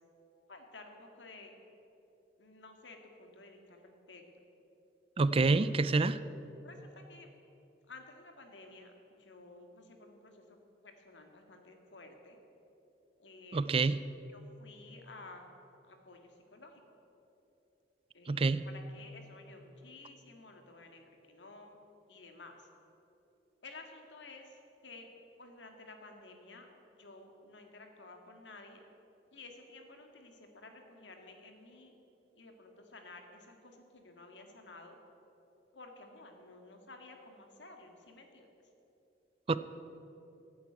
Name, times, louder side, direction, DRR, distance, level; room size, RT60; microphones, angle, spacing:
voice 1, 0.5-1.5 2.4-4.2 6.6-7.3 7.9-10.6 10.8-12.4 13.2-13.7 14.3-15.5 15.8-16.8 18.1-21.8 22.1-22.7 23.6-25.1 25.4-28.8 29.3-31.9 32.3-35.0 35.7-38.5, left 3 dB, 85° left, 4 dB, 2.0 m, -53 dB
voice 2, 5.2-6.2 13.5-14.0 18.3-18.6 39.5-39.6, right 3 dB, 30° right, 15 dB, 0.4 m, -27 dB
14.5 x 9.3 x 8.7 m, 2.9 s
head